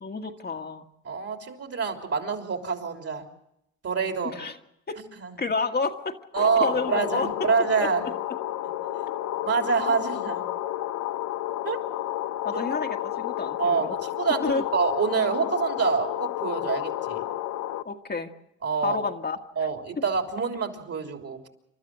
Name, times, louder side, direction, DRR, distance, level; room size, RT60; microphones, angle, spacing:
voice 1, 0.0-0.9 4.3-4.6 4.9-5.0 5.4-7.5 7.8-8.1 12.4-13.9 14.4-14.7 17.8-18.3 18.8-19.4 20.0-20.1, left 4 dB, 30° left, 4 dB, 1.6 m, -30 dB
voice 2, 1.1-3.2 3.8-4.4 5.2-5.3 6.3-8.0 9.4-10.4 11.6-11.8 12.5-12.6 13.6-14.4 14.7-17.2 18.6-19.0 19.6-21.5, right 5 dB, 50° right, 4 dB, 3.4 m, -26 dB
sound 1, 6.4-17.8, left 13 dB, 65° left, 0.9 m, -31 dB
28.0 x 12.5 x 7.7 m, 0.82 s
supercardioid pair, 65°, 32 cm